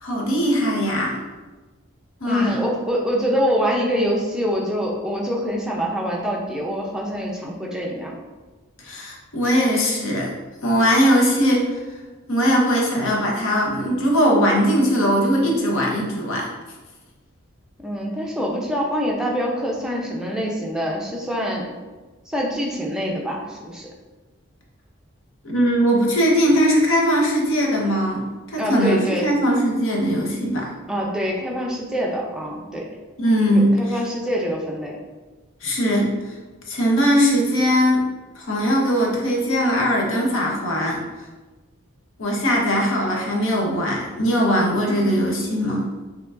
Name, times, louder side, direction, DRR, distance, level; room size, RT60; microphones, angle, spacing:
voice 1, 0.0-1.2 2.2-2.6 8.8-10.3 10.6-11.8 12.3-16.5 25.4-30.7 33.2-34.0 35.6-36.3 36.7-38.0 38.3-41.0 42.2-45.9, equal, 70° left, -2 dB, 0.8 m, -20 dB
voice 2, 2.2-8.1 17.8-21.7 22.3-23.9 28.6-29.3 30.9-32.9 33.5-35.0, equal, 5° right, -2 dB, 0.5 m, -25 dB
4.9 x 2.9 x 2.4 m, 1.3 s
head